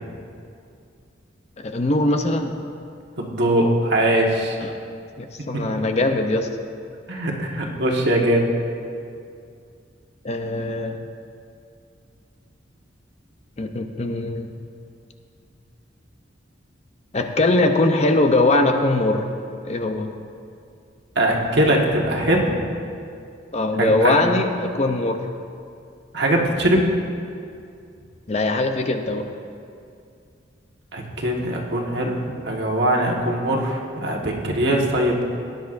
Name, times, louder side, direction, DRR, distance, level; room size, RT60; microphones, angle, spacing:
voice 1, 1.6-2.5 4.6-4.7 5.2-6.5 10.2-11.0 13.6-14.5 17.1-19.3 19.6-20.1 23.5-25.3 28.3-29.2, left 2 dB, 35° left, 5 dB, 0.6 m, -21 dB
voice 2, 3.2-4.6 5.5-5.6 7.1-8.5 21.1-22.5 23.8-24.2 26.1-26.9 30.9-35.2, right 1 dB, 60° right, -1 dB, 1.5 m, -21 dB
18.0 x 10.5 x 2.6 m, 2.4 s
head